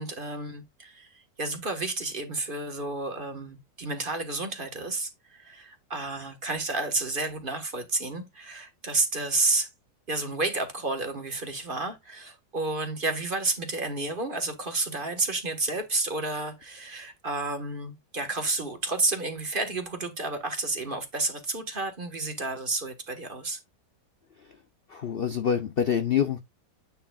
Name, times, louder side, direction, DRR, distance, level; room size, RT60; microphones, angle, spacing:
voice 1, 0.0-9.7 10.1-23.6, right 3 dB, 30° right, 1.5 m, -31 dB
voice 2, 24.9-26.4, left 8 dB, 70° left, 0.5 m, -26 dB
9.3 x 6.5 x 2.4 m
omnidirectional pair, 1.9 m